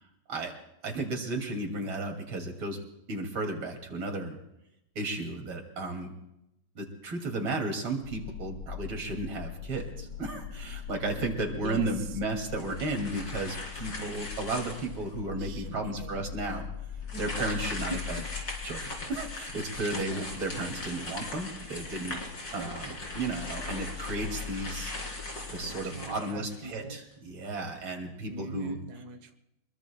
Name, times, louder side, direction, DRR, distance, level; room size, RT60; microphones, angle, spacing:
voice 1, 0.8-2.8 3.1-4.4 5.0-6.1 6.8-16.6 17.2-18.2 18.6-22.2 22.5-24.9 25.5-28.8, right 2 dB, 75° right, 3 dB, 3.5 m, -34 dB
sound 1, 8.0-26.4, left 8 dB, 65° left, 1.1 m, -42 dB
voice 2, 11.6-12.2 15.4-16.3 17.1-17.3 17.8-18.2 20.0-20.3 20.6-20.7 22.5-22.8 25.8-27.0 28.2-29.3, right 3 dB, 55° right, 7 dB, 1.5 m, -42 dB
sound 2, 12.5-15.1 15.7-15.8 17.0-26.8, left 2 dB, 50° left, 4.2 m, -40 dB
27.0 x 22.0 x 2.3 m, 0.84 s
omnidirectional pair, 2.3 m